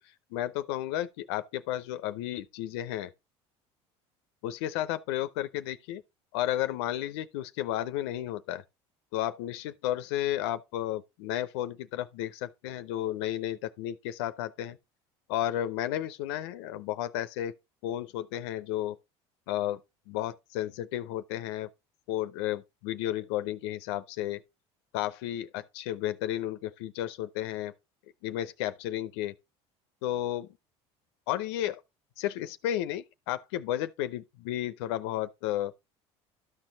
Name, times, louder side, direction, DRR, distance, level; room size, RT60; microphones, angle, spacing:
voice 1, 0.3-3.1 4.4-6.0 6.3-8.6 9.1-14.8 15.3-17.5 17.8-19.0 19.5-19.8 20.1-21.7 22.1-24.4 24.9-27.7 28.2-29.3 30.0-30.5 31.3-31.8 32.2-35.7, left 13 dB, 80° left, 0.6 m, -33 dB
12.5 x 4.4 x 3.9 m
supercardioid pair, 90°, 14 cm